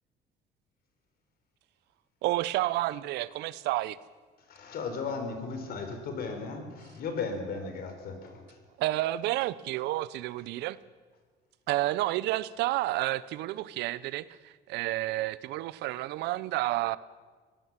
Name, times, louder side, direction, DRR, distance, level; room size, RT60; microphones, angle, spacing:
voice 1, 2.2-4.0 8.8-10.8 11.7-17.0, right 16 dB, 85° right, 18 dB, 0.7 m, -30 dB
voice 2, 4.5-8.6, left 4 dB, 65° left, 6 dB, 4.2 m, -36 dB
21.0 x 17.0 x 7.4 m, 1.5 s
cardioid pair, 110°, 17 cm